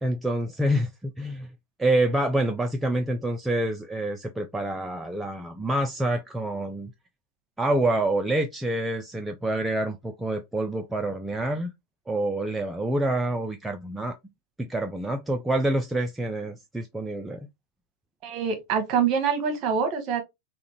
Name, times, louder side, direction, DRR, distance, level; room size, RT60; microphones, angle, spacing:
voice 1, 0.0-1.5 1.8-6.9 7.6-11.7 12.1-14.2 14.6-17.5, right 1 dB, 5° right, 0.3 m, -27 dB
voice 2, 18.2-20.2, right 6 dB, 40° right, 1.0 m, -25 dB
3.6 x 2.2 x 2.7 m
figure-of-eight pair, 90°, 0 cm